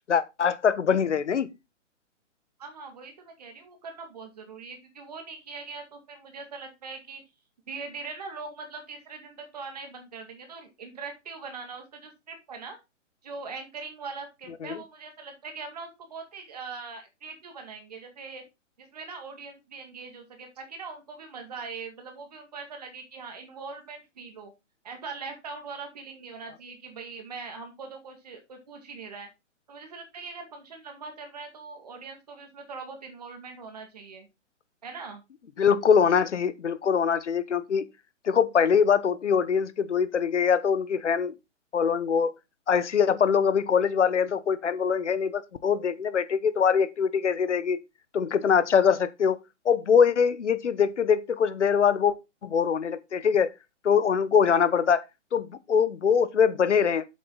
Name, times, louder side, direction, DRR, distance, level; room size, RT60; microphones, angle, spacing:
voice 1, 0.1-1.5 14.6-14.8 35.6-37.9 38.2-41.3 41.7-42.3 42.7-47.8 48.1-49.4 49.6-52.1 52.4-53.5 53.8-55.0 55.3-57.0, left 7 dB, 70° left, 1.1 m, -23 dB
voice 2, 2.6-7.2 7.7-12.8 13.2-18.4 18.8-24.5 24.8-29.3 29.7-34.3 34.8-35.2, right 4 dB, 30° right, 2.1 m, -41 dB
7.8 x 7.5 x 3.8 m
hypercardioid pair, 180°, 37 cm